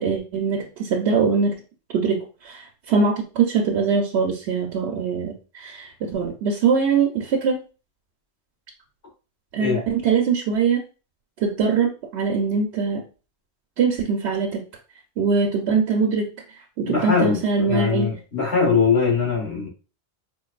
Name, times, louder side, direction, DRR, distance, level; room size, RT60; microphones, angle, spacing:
voice 1, 0.0-1.5 1.9-7.6 9.5-10.8 11.4-13.0 13.8-14.6 15.2-16.2 16.8-18.1, right 5 dB, 75° right, 0 dB, 0.9 m, -22 dB
voice 2, 16.8-19.7, left 5 dB, 65° left, -3 dB, 1.8 m, -21 dB
4.5 x 2.6 x 2.3 m, 0.33 s
omnidirectional pair, 1.1 m